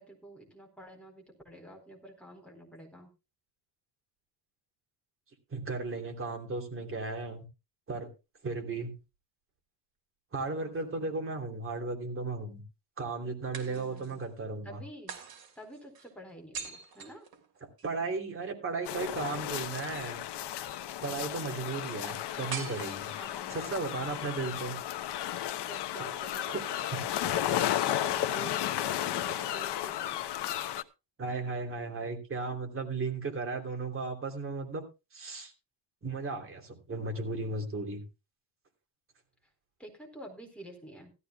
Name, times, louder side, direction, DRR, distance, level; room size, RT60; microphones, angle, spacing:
voice 1, 0.0-3.1 13.7-14.2 14.6-15.1 15.6-17.3 23.2-24.8 25.6-30.6 39.8-41.1, right 1 dB, 5° left, 2 dB, 4.0 m, -49 dB
voice 2, 5.5-7.4 7.9-8.1 8.4-8.9 10.3-12.6 13.0-14.8 17.8-20.2 21.0-23.1 23.5-24.7 26.5-26.9 31.2-34.8 35.1-35.5 36.0-38.0, right 3 dB, 30° right, 3 dB, 3.1 m, -35 dB
sound 1, 10.4-11.5 13.5-14.3 15.1-17.9 22.5-23.6, right 6 dB, 55° right, 3.0 m, -44 dB
sound 2, 18.8-30.8, left 12 dB, 65° left, 1.0 m, -33 dB
16.5 x 14.0 x 2.3 m, 0.28 s
cardioid pair, 160°, 43 cm